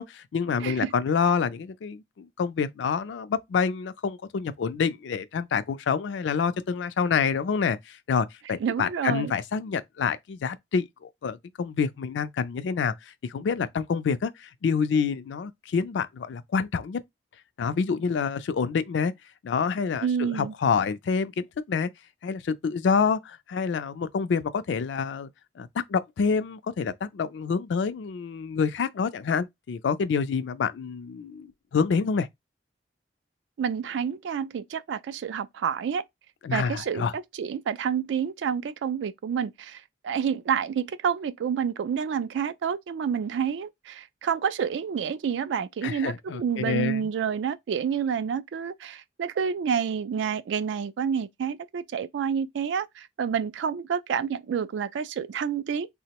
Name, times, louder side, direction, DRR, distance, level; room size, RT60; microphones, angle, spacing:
voice 1, 0.0-12.9 13.3-17.0 17.6-19.1 19.4-21.9 22.2-25.3 25.6-32.3 36.4-37.1 45.8-47.1, left 5 dB, 80° left, 0.4 m, -27 dB
voice 2, 0.6-0.9 8.6-9.3 20.0-20.5 33.6-36.0 36.5-55.9, right 7 dB, 80° right, 0.3 m, -29 dB
3.5 x 2.0 x 2.8 m
head